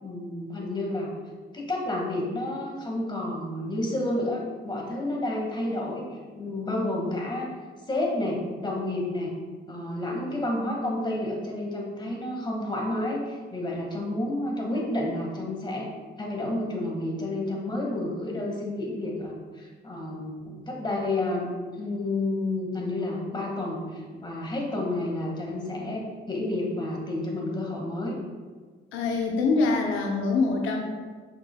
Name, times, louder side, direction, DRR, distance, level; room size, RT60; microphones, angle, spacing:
voice 1, 0.0-1.1 1.5-6.1 6.3-7.5 7.9-9.3 9.7-15.9 16.2-28.2, left 1 dB, 20° left, -1 dB, 1.9 m, -30 dB
voice 2, 28.9-30.8, left 3 dB, 90° left, 1 dB, 0.8 m, -24 dB
7.8 x 6.0 x 2.3 m, 1.5 s
cardioid pair, 90°, 20 cm